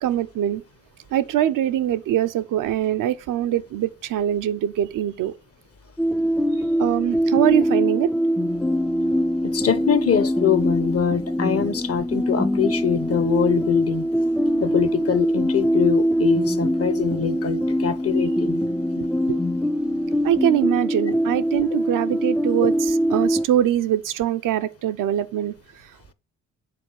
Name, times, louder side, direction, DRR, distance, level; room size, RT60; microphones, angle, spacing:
voice 1, 0.0-0.6 1.1-5.3 6.8-8.1 19.0-19.4 20.2-25.5, right 11 dB, 70° right, 0.7 m, -23 dB
sound 1, 6.0-23.5, equal, 5° left, 0.4 m, -23 dB
voice 2, 9.4-14.0 14.6-18.6, left 8 dB, 45° left, 0.9 m, -23 dB
7.7 x 3.8 x 6.3 m
supercardioid pair, 65°, 33 cm